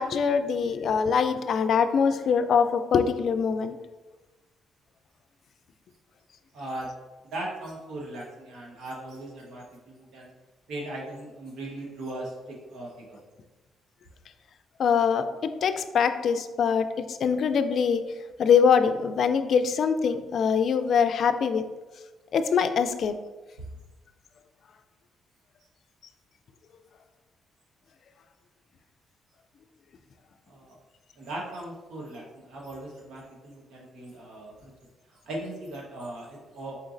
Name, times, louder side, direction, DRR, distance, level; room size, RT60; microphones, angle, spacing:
voice 1, 0.0-3.8 14.8-18.0 18.4-21.6 22.3-23.1, left 6 dB, 60° left, 9 dB, 0.3 m, -23 dB
voice 2, 6.5-6.9 7.2-10.3 10.7-13.2 30.5-30.8 31.2-34.7 35.2-36.7, right 1 dB, 80° right, -2 dB, 1.2 m, -38 dB
4.3 x 4.0 x 2.5 m, 1.2 s
cardioid pair, 90°, 0 cm